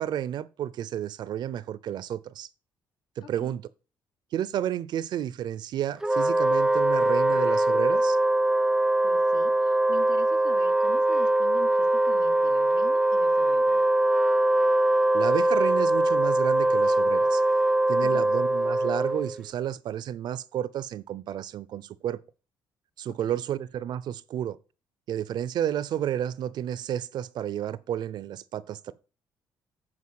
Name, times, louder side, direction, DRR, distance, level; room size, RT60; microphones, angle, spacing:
voice 1, 0.0-2.5 3.2-3.6 4.3-8.2 15.1-17.4 17.9-22.2 23.0-24.6 25.1-28.9, right 10 dB, 65° right, 0.5 m, -31 dB
voice 2, 3.2-3.6 9.0-13.8 18.0-18.2 23.1-23.4, left 6 dB, 65° left, 1.2 m, -45 dB
Wind instrument woodwind instrument, 6.0-19.4, right 1 dB, 5° right, 0.3 m, -22 dB
8.5 x 4.7 x 6.4 m
cardioid pair, 115°, 8 cm